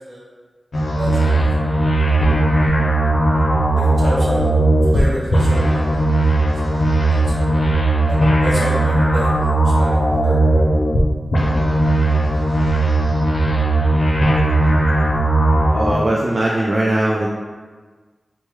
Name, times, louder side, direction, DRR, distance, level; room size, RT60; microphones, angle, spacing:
sound 1, 0.7-5.0 5.3-11.0 11.3-15.9, right 1 dB, 90° left, 0.5 m, -17 dB
voice 1, 1.0-1.4 3.8-4.5 4.9-6.0 6.9-7.5 8.1-9.9 10.2-10.4, equal, 65° right, -6 dB, 0.8 m, -29 dB
voice 2, 15.7-17.3, right 1 dB, 45° right, -4 dB, 0.3 m, -19 dB
3.0 x 2.1 x 3.1 m, 1.4 s
wide cardioid pair, 100°, 0 cm